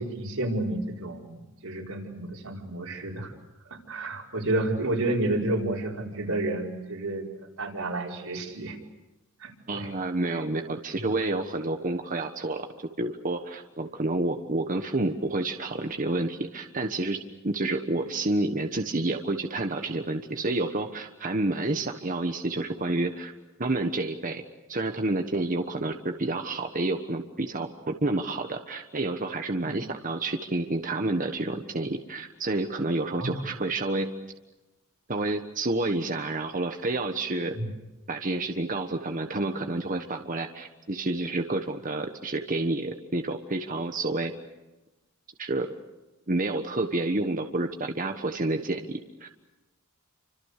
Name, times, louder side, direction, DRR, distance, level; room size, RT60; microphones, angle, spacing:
voice 1, 0.0-3.3 3.7-7.2 7.6-8.8 9.4-9.9 10.3-10.4 11.0-11.1 29.6-29.8 33.2-33.4 37.5-37.7, right 2 dB, 90° right, -1 dB, 5.0 m, -30 dB
voice 2, 9.7-12.7 13.0-17.2 17.4-23.3 23.6-24.4 24.7-34.1 35.1-37.5 38.1-44.3 45.4-45.7 46.3-49.3, right 2 dB, 40° right, 5 dB, 1.3 m, -29 dB
29.0 x 26.0 x 6.7 m, 1.0 s
head